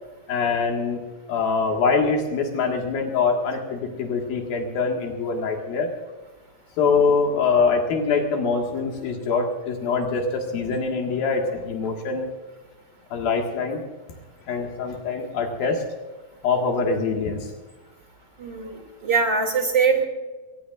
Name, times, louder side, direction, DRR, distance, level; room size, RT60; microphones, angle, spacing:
voice 1, 0.3-1.0 1.3-5.9 6.8-12.3 13.1-13.8 14.5-15.8 16.4-17.5, left 4 dB, 75° left, 1 dB, 3.6 m, -24 dB
voice 2, 18.4-20.0, right 5 dB, 30° right, 3 dB, 2.9 m, -22 dB
22.0 x 20.0 x 2.5 m, 1.2 s
omnidirectional pair, 4.2 m